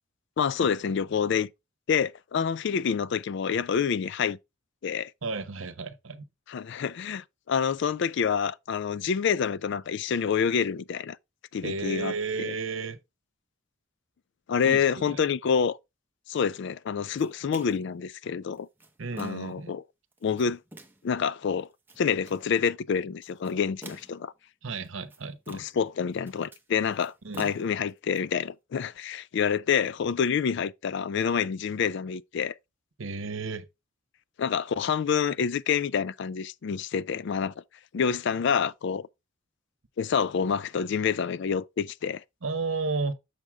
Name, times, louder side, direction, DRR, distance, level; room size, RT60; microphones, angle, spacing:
voice 1, 0.4-1.5 1.9-4.4 4.8-5.1 6.5-11.2 11.5-12.5 14.5-15.8 16.3-18.7 19.2-19.8 20.2-20.6 21.0-21.7 22.0-24.3 25.5-32.5 34.4-37.5 37.9-39.1 40.0-42.2, left 7 dB, 60° left, 0.4 m, -27 dB
voice 2, 5.2-6.2 11.6-13.0 14.6-15.2 19.0-19.8 24.6-25.7 27.2-27.5 33.0-33.6 42.4-43.1, right 4 dB, 75° right, 0.9 m, -33 dB
sound 1, 17.2-17.9 18.5-19.6 20.1-21.1 21.6-22.5 23.2-24.3 24.8-25.9 26.1-28.2, right 1 dB, 10° right, 0.9 m, -48 dB
6.6 x 6.2 x 3.4 m
head